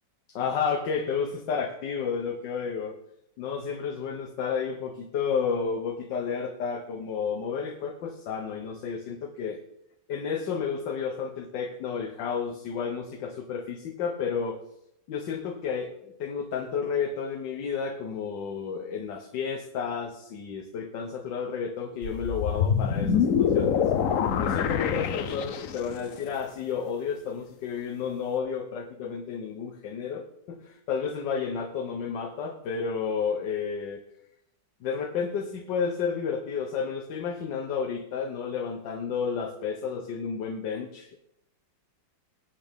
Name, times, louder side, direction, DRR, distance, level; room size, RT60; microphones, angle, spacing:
voice 1, 0.3-3.0 3.4-9.6 10.1-14.6 15.1-23.9 24.4-34.0 34.8-41.2, left 6 dB, 80° left, 5 dB, 1.6 m, -31 dB
sound 1, 22.0-26.0, left 7 dB, 60° left, 0.9 m, -25 dB
19.5 x 8.3 x 3.6 m, 0.79 s
omnidirectional pair, 1.9 m